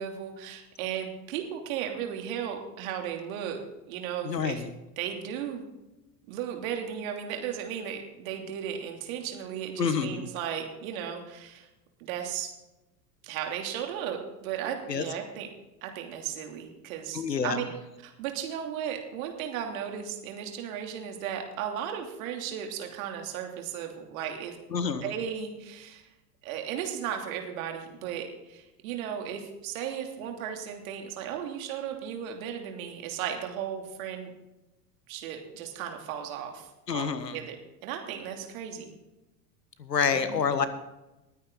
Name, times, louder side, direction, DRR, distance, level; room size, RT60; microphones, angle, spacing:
voice 1, 0.0-3.6 3.9-4.6 5.0-5.6 6.3-11.7 12.0-12.5 13.2-15.5 15.8-17.7 18.0-24.6 25.0-26.1 26.4-34.3 35.1-38.9 40.1-40.4, right 9 dB, 60° right, 3 dB, 3.1 m, -35 dB
voice 2, 4.2-4.7 9.8-10.3 14.9-15.0 17.1-17.6 24.7-25.1 36.9-37.3 39.8-40.7, left 6 dB, 85° left, 12 dB, 1.5 m, -28 dB
20.5 x 9.4 x 3.9 m, 1.0 s
hypercardioid pair, 90°, 48 cm